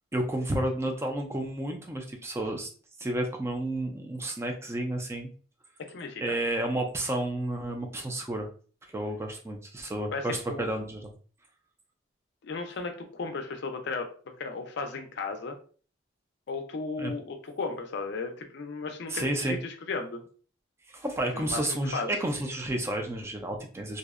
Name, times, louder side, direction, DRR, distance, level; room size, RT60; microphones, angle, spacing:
voice 1, 0.1-2.7 3.0-5.3 6.2-8.5 8.9-11.1 17.0-17.1 19.1-19.6 20.9-24.0, right 1 dB, 15° right, 2 dB, 0.3 m, -31 dB
voice 2, 5.9-6.4 10.1-10.7 12.4-14.1 14.4-15.5 16.5-20.2 21.3-21.6 21.9-22.1, left 4 dB, 60° left, 6 dB, 0.4 m, -35 dB
2.6 x 2.0 x 2.4 m, 0.40 s
head